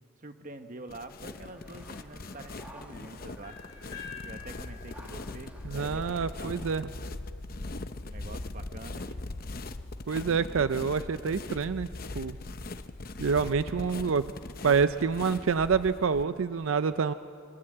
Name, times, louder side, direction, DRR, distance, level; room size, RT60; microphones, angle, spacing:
voice 1, 0.2-3.6 4.2-6.9 8.0-9.2, right 2 dB, 40° right, 7 dB, 1.2 m, -46 dB
sound 1, 0.9-16.2, left 2 dB, 45° left, 0.7 m, -40 dB
sound 2, 1.2-6.7, equal, 5° right, 2.0 m, -54 dB
sound 3, 3.4-7.3, left 7 dB, 20° left, 4.7 m, -48 dB
voice 2, 5.6-6.9 10.1-11.9 12.1-12.4 13.2-14.3 14.6-17.1, right 5 dB, 80° right, 12 dB, 0.5 m, -27 dB
25.5 x 23.0 x 7.8 m, 2.6 s
head